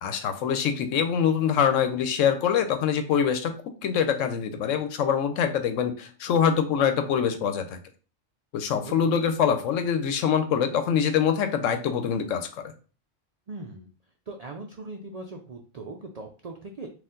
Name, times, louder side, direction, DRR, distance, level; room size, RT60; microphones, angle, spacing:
voice 1, 0.0-3.5 3.8-7.8 8.5-12.7, left 7 dB, 80° left, 8 dB, 1.0 m, -24 dB
voice 2, 8.8-9.2 13.5-13.9 14.3-16.9, right 3 dB, 70° right, 3 dB, 0.3 m, -40 dB
4.2 x 2.5 x 3.7 m, 0.37 s
omnidirectional pair, 1.3 m